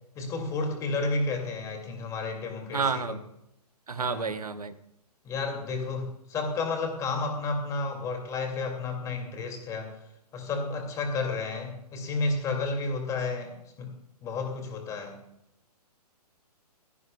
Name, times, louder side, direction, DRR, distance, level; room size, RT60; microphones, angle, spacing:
voice 1, 0.2-3.2 4.0-4.3 5.2-10.0 10.3-13.9 14.2-15.3, left 3 dB, 15° left, 4 dB, 2.4 m, -31 dB
voice 2, 2.7-3.2 3.9-4.7, right 5 dB, 65° right, 12 dB, 0.9 m, -30 dB
16.5 x 15.5 x 2.3 m, 0.81 s
figure-of-eight pair, 125°, 21 cm